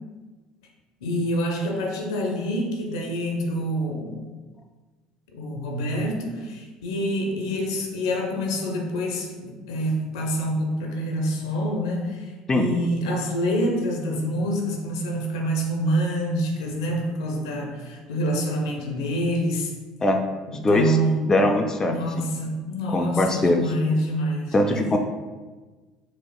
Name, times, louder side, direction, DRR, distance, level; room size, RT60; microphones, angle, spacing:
voice 1, 1.0-4.3 5.3-19.7 20.5-21.3 21.9-25.0, equal, 80° left, 1 dB, 0.5 m, -26 dB
voice 2, 20.6-21.0 21.3-22.0 22.9-23.7 24.5-25.0, left 1 dB, 20° left, 4 dB, 0.3 m, -21 dB
4.1 x 2.4 x 2.3 m, 1.3 s
hypercardioid pair, 70°, 3 cm